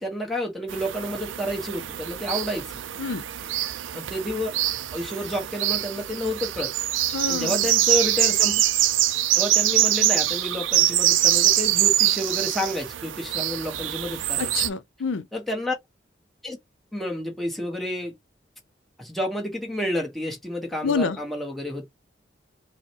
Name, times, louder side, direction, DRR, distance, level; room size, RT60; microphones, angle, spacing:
voice 1, 0.0-2.7 3.9-4.5 4.9-6.7 7.3-8.6 9.3-14.5 15.3-15.7 16.4-16.6 16.9-18.1 19.0-21.8, left 1 dB, ahead, 1.0 m, -30 dB
sound 1, 0.7-14.7, right 13 dB, 85° right, 0.4 m, -24 dB
voice 2, 7.1-7.7 14.4-15.3 20.8-21.2, left 5 dB, 90° left, 0.5 m, -27 dB
4.6 x 2.1 x 2.7 m
head